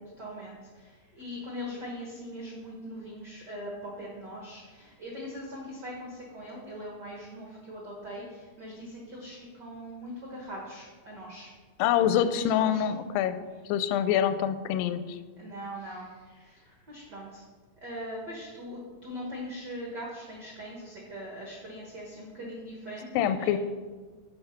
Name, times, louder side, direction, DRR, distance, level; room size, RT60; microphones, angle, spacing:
voice 1, 0.2-11.5 12.0-12.8 15.4-17.4 17.8-23.6, equal, 90° right, -3 dB, 0.9 m, -41 dB
voice 2, 11.8-13.4 13.7-15.2 23.2-23.6, left 10 dB, 80° left, 11 dB, 2.2 m, -25 dB
7.1 x 5.7 x 5.7 m, 1.4 s
omnidirectional pair, 4.2 m